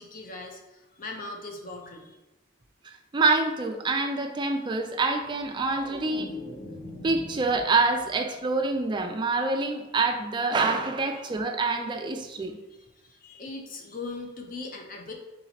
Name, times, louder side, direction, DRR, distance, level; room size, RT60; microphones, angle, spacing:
voice 1, 0.0-2.2 11.1-11.3 12.7-15.1, left 3 dB, 45° left, 2 dB, 0.6 m, -40 dB
voice 2, 2.8-6.3 7.0-12.6, right 3 dB, 20° right, 4 dB, 0.3 m, -26 dB
sound 1, 5.1-8.2 8.6-9.0, left 1 dB, 20° left, 0.9 m, -42 dB
3.8 x 2.9 x 4.2 m, 1.1 s
head